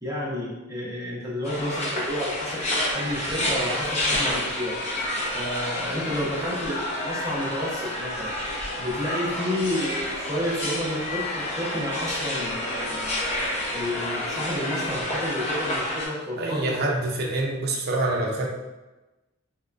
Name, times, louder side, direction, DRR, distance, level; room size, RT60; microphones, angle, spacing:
voice 1, 0.0-4.8 5.3-8.4 8.8-13.2 13.7-16.9, left 1 dB, 15° right, -6 dB, 0.8 m, -30 dB
sound 1, 1.4-16.1, left 1 dB, 35° left, 0.6 m, -29 dB
voice 2, 16.4-18.5, right 2 dB, 50° right, -1 dB, 0.5 m, -26 dB
3.5 x 2.2 x 2.4 m, 1.1 s
head